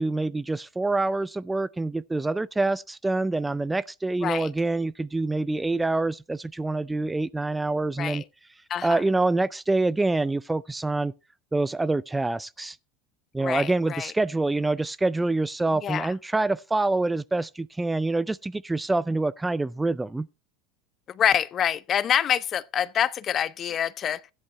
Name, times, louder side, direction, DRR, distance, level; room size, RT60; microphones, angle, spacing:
voice 1, 0.0-8.2 8.8-11.1 11.5-12.8 13.3-20.3, right 2 dB, 10° right, 0.4 m, -26 dB
voice 2, 13.4-14.1 15.8-16.1 21.1-24.2, left 9 dB, 40° left, 0.7 m, -26 dB
15.5 x 11.0 x 2.2 m
hypercardioid pair, 90°, 0 cm